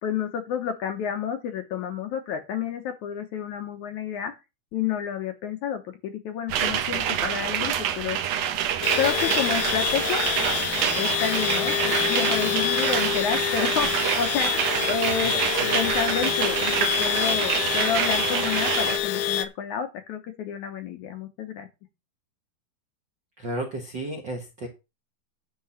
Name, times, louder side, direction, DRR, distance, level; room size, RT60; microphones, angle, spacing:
voice 1, 0.0-4.3 4.7-8.2 8.9-10.2 11.0-15.3 15.7-21.7, left 8 dB, 70° left, 7 dB, 2.0 m, -30 dB
sound 1, 6.5-19.0, right 9 dB, 75° right, 1.5 m, -26 dB
sound 2, 8.8-19.5, left 11 dB, 85° left, 2.7 m, -27 dB
voice 2, 15.2-15.8 23.4-24.7, right 1 dB, 50° right, 2 dB, 1.3 m, -34 dB
10.5 x 3.9 x 7.1 m, 0.26 s
omnidirectional pair, 4.3 m